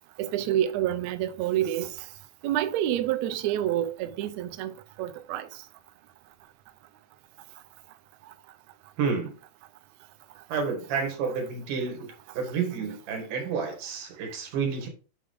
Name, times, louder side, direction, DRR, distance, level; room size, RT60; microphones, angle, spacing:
voice 1, 0.2-1.9 2.4-4.7 5.0-5.5 14.2-14.3, right 12 dB, 85° right, 1.5 m, -28 dB
voice 2, 9.0-9.4 10.5-12.1 12.3-14.9, right 5 dB, 70° right, 3.3 m, -30 dB
8.6 x 4.8 x 3.6 m
omnidirectional pair, 3.9 m